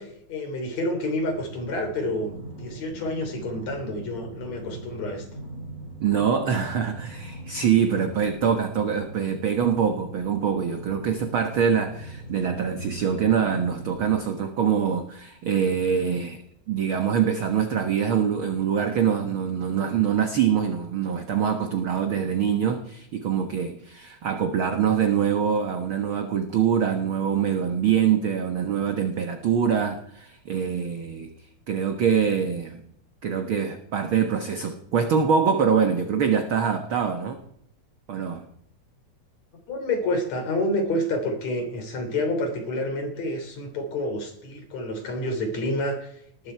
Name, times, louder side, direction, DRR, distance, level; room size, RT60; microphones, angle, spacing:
voice 1, 0.0-5.3 39.7-46.5, left 1 dB, 60° left, 5 dB, 4.5 m, -29 dB
sound 1, 1.1-14.1, right 1 dB, 25° right, 6.0 m, -41 dB
voice 2, 6.0-16.4 16.7-31.3 31.7-32.8 33.2-37.4 38.1-38.4, right 7 dB, 55° right, 6 dB, 1.8 m, -24 dB
20.0 x 14.5 x 4.6 m, 0.69 s
omnidirectional pair, 3.5 m